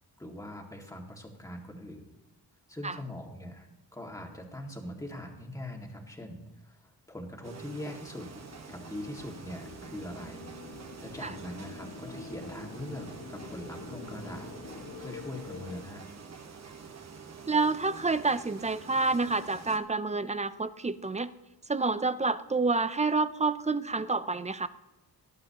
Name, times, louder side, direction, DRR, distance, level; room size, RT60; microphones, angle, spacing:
voice 1, 0.2-2.1 2.7-8.3 8.7-10.5 11.0-16.0, left 1 dB, 10° left, 0 dB, 1.9 m, -42 dB
sound 1, 7.4-19.8, right 5 dB, 40° right, 1.0 m, -47 dB
sound 2, 8.4-15.8, left 4 dB, 45° left, 1.6 m, -46 dB
voice 2, 17.5-21.3 21.7-24.7, right 3 dB, 20° right, 13 dB, 0.4 m, -28 dB
19.0 x 11.5 x 2.9 m, 1.0 s
wide cardioid pair, 120°, 40 cm